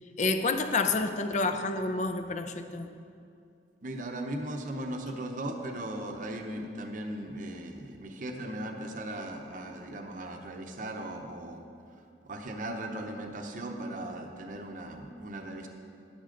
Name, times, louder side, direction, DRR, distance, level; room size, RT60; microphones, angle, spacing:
voice 1, 0.2-2.9, left 3 dB, 40° left, 8 dB, 0.5 m, -29 dB
voice 2, 3.8-11.6 12.2-15.7, right 1 dB, 45° right, 3 dB, 0.7 m, -38 dB
10.5 x 9.8 x 3.8 m, 2.4 s
head